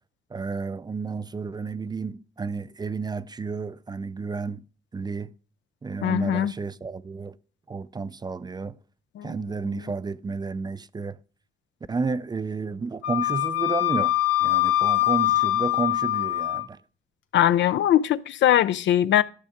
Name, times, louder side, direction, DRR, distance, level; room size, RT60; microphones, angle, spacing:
voice 1, 0.3-4.6 4.9-5.3 5.8-7.3 7.7-8.8 9.2-11.2 11.9-14.1 14.4-16.8, right 4 dB, 20° right, 0.4 m, -31 dB
voice 2, 6.0-6.5 9.2-9.8 17.3-19.2, left 12 dB, 70° left, 0.5 m, -21 dB
Wind instrument woodwind instrument, 13.0-16.7, left 15 dB, 90° left, 0.9 m, -23 dB
12.5 x 6.2 x 3.6 m
cardioid pair, 90°, 20 cm